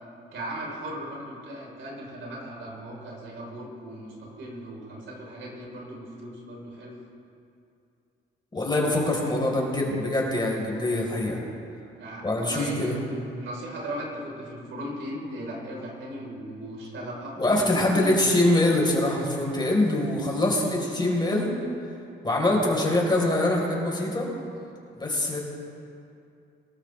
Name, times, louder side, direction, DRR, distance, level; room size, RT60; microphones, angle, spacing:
voice 1, 0.3-7.0 12.0-13.0 13.4-18.2, equal, 75° right, -2 dB, 4.3 m, -37 dB
voice 2, 8.5-11.4 12.2-13.0 17.4-21.5 22.2-24.3 24.9-25.4, left 1 dB, 20° left, -2 dB, 4.3 m, -24 dB
23.0 x 13.0 x 3.4 m, 2.5 s
cardioid pair, 90°, 20 cm